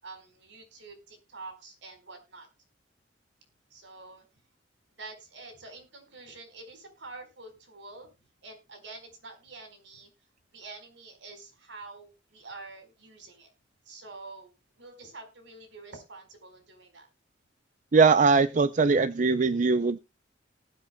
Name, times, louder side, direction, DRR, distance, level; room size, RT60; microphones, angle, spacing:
voice 1, 0.0-2.5 3.7-4.2 5.0-8.1 8.4-10.1 10.5-13.5 13.8-14.5 14.8-17.1, right 3 dB, 75° right, 4.4 m, -47 dB
voice 2, 17.9-20.0, right 4 dB, 40° right, 0.5 m, -21 dB
19.5 x 7.9 x 2.2 m
head